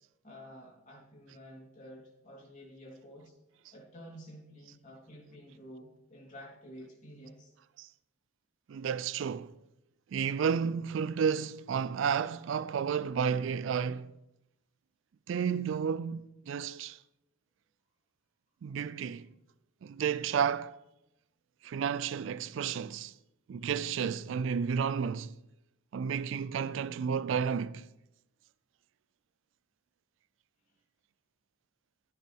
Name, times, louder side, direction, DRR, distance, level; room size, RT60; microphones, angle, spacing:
voice 1, 0.2-3.3 3.7-7.5, equal, 35° left, 3.5 m, -50 dB
voice 2, 8.7-9.5 10.1-14.1 15.3-17.0 18.6-19.3 19.8-20.8 21.6-23.1 23.5-25.4 25.9-27.9, right 7 dB, 65° right, 0.3 m, -32 dB
16.5 x 6.2 x 3.5 m
head